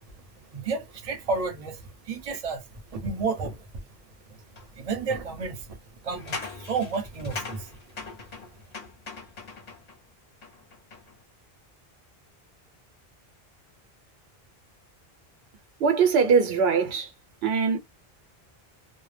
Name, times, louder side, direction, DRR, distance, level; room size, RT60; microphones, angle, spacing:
voice 1, 0.5-2.6 2.9-3.6 4.7-5.8 6.0-7.7, right 4 dB, 40° right, 0.7 m, -31 dB
sound 1, 4.6-4.7 6.1-10.0 10.4-11.2, left 3 dB, 45° left, 0.7 m, -40 dB
voice 2, 15.8-17.1 17.4-17.8, right 5 dB, 80° right, 0.9 m, -22 dB
2.1 x 2.0 x 3.2 m
omnidirectional pair, 1.0 m